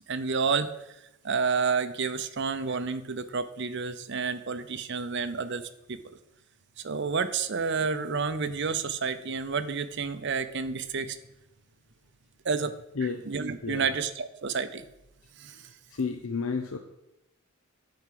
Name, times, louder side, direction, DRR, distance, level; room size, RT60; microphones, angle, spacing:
voice 1, 0.1-0.7 1.2-6.0 6.8-11.2 12.4-14.9 15.4-15.7, right 5 dB, 55° right, 11 dB, 0.7 m, -30 dB
voice 2, 13.6-13.9 15.9-16.8, left 5 dB, 80° left, 6 dB, 0.7 m, -31 dB
9.1 x 4.8 x 7.7 m, 0.88 s
head